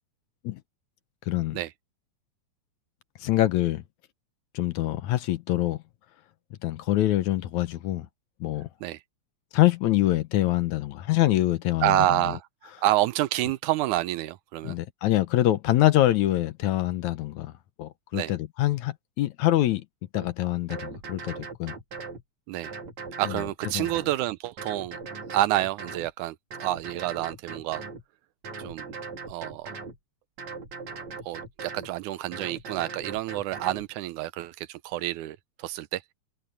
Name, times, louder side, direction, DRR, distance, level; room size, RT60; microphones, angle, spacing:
voice 1, 1.3-1.6 3.2-3.8 4.5-5.8 6.6-8.1 8.4-8.7 9.5-12.0 14.6-17.5 17.8-19.8 20.1-21.8 23.3-23.4 23.7-23.9, left 14 dB, 70° left, 2.1 m, -25 dB
voice 2, 11.8-14.8 18.1-18.3 22.5-22.7 23.2-25.0 25.3-27.8 28.6-28.9 29.3-29.7 31.2-36.1, right 15 dB, 80° right, 2.0 m, -28 dB
sound 1, 20.1-20.3 20.7-22.2 22.6-24.2 24.6-26.1 26.5-28.0 28.4-30.0 30.4-31.9 32.3-33.9, right 4 dB, 60° right, 4.6 m, -39 dB
omnidirectional pair, 3.7 m